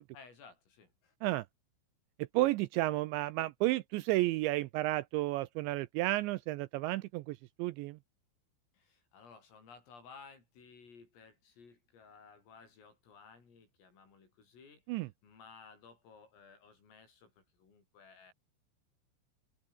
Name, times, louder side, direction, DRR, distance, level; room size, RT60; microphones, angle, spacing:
voice 1, 0.1-1.2 8.7-18.3, left 5 dB, 85° left, 10.5 m, -57 dB
voice 2, 2.3-8.0 14.9-15.1, right 18 dB, 85° right, 2.6 m, -32 dB
open air
omnidirectional pair, 5.8 m